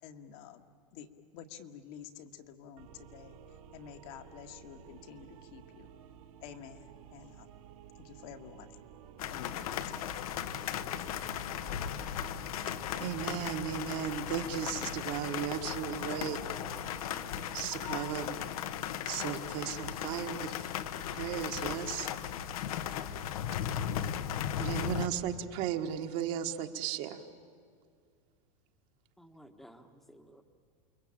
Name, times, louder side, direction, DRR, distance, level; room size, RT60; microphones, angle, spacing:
voice 1, 0.0-0.6 0.9-5.9 6.4-7.5 8.0-8.8 9.3-10.1, left 8 dB, 45° left, 5 dB, 1.8 m, -50 dB
sound 1, 2.8-18.8, right 9 dB, 60° right, 2.2 m, -53 dB
sound 2, 9.2-25.1, left 10 dB, 70° left, 1.3 m, -37 dB
voice 2, 13.0-16.4 17.5-18.4 19.0-20.5 21.1-22.1 24.6-27.2, right 10 dB, 40° right, 5 dB, 1.6 m, -35 dB
voice 3, 29.2-30.4, equal, ahead, 7 dB, 1.3 m, -55 dB
28.5 x 22.5 x 8.8 m, 2.2 s
supercardioid pair, 160°, 19 cm